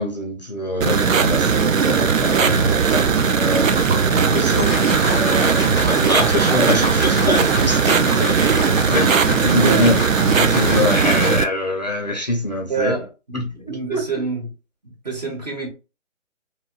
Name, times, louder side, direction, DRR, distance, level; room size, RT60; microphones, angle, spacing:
voice 1, 0.0-12.9 13.3-14.0, left 1 dB, 35° left, 0.5 m, -24 dB
sound 1, 0.8-11.4, right 6 dB, 90° right, 0.5 m, -18 dB
Liquid, 3.0-10.2, right 2 dB, 70° right, 1.3 m, -34 dB
sound 2, 4.3-11.7, left 1 dB, 5° left, 0.7 m, -29 dB
voice 2, 9.6-10.0 12.7-14.5 14.8-15.7, right 4 dB, 35° right, 0.8 m, -27 dB
2.9 x 2.6 x 2.3 m
figure-of-eight pair, 155°, 38 cm